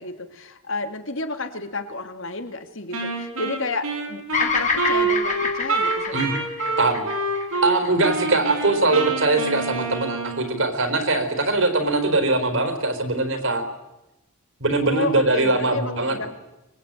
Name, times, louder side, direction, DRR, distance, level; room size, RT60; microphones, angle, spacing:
voice 1, 0.0-6.5 14.8-16.3, left 3 dB, 60° left, 8 dB, 2.4 m, -31 dB
Wind instrument woodwind instrument, 2.9-7.7 8.0-10.6, right 3 dB, 80° right, 6.3 m, -27 dB
Bird vocalization bird call bird song, 4.3-8.6, left 5 dB, 35° left, 2.8 m, -27 dB
voice 2, 7.6-13.6 14.6-16.3, right 2 dB, 60° right, 8 dB, 4.3 m, -21 dB
24.5 x 20.5 x 9.1 m, 0.98 s
head